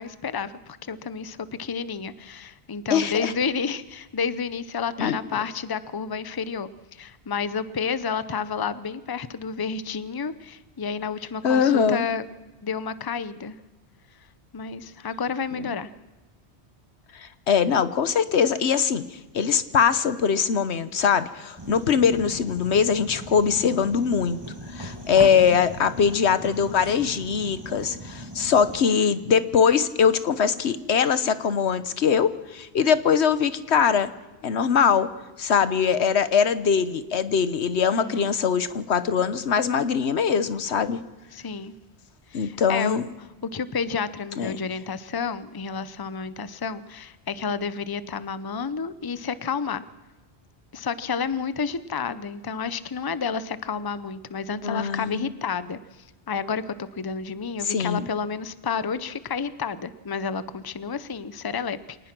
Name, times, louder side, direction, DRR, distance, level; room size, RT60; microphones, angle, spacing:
voice 1, 0.0-12.2 12.6-13.6 14.5-15.9 25.3-25.7 37.9-38.3 41.3-41.7 42.3-49.8 50.7-62.0, left 6 dB, 25° left, 15 dB, 0.7 m, -30 dB
voice 2, 2.9-3.3 5.0-5.4 11.4-12.1 17.1-19.0 19.3-24.4 24.7-34.1 34.4-35.1 35.4-41.0 42.3-43.0 44.4-44.6 54.6-55.3 57.7-58.1, left 7 dB, 85° left, 14 dB, 1.3 m, -22 dB
sound 1, 21.6-28.8, right 1 dB, 25° right, 1.6 m, -38 dB
26.0 x 19.0 x 6.1 m, 1.1 s
omnidirectional pair, 1.1 m